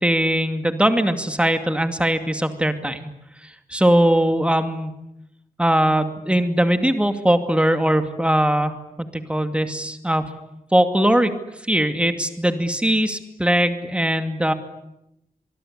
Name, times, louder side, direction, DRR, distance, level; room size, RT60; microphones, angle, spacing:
voice 1, 0.0-3.1 3.7-4.9 5.6-8.7 9.0-10.2 10.7-11.3 11.7-14.5, right 1 dB, 5° right, 8 dB, 2.4 m, -20 dB
25.5 x 23.0 x 9.9 m, 0.85 s
wide cardioid pair, 135°, 15 cm